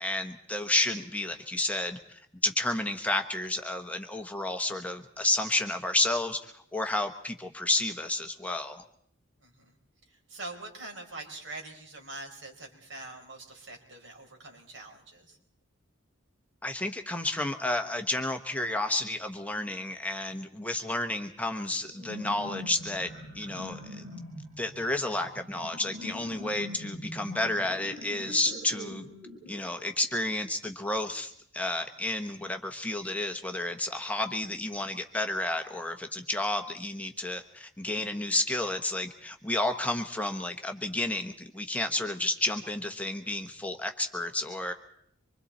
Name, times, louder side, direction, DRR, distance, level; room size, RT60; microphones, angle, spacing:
voice 1, 0.0-2.0 2.4-6.4 6.7-8.8 16.6-23.1 23.3-24.0 24.6-29.1 29.5-44.7, left 2 dB, 5° left, 5 dB, 1.0 m, -31 dB
voice 2, 9.4-9.7 10.3-15.4, right 2 dB, 70° right, 1 dB, 4.6 m, -44 dB
sound 1, 21.9-29.7, left 1 dB, 40° right, 6.1 m, -43 dB
25.0 x 24.0 x 4.3 m, 0.66 s
head